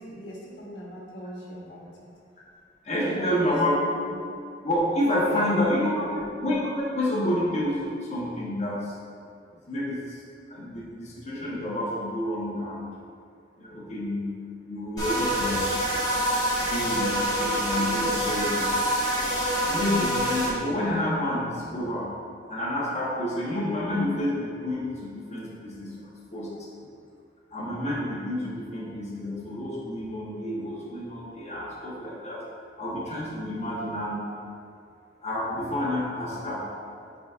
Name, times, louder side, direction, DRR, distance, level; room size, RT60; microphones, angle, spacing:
voice 1, 0.0-2.1 2.9-3.5 4.0-4.2 5.2-6.2, equal, 85° left, -5 dB, 1.3 m, -40 dB
voice 2, 2.8-3.8 4.6-8.9 9.5-10.2 10.5-12.9 13.6-14.4 14.6-15.7 16.6-18.7 19.7-22.1 22.5-25.9 26.3-26.5 27.5-32.4 32.8-34.2 35.2-36.6, left 1 dB, 40° left, -7 dB, 1.1 m, -29 dB
sound 1, 15.0-20.5, equal, 20° left, 1.4 m, -26 dB
9.7 x 4.0 x 2.5 m, 2.3 s
head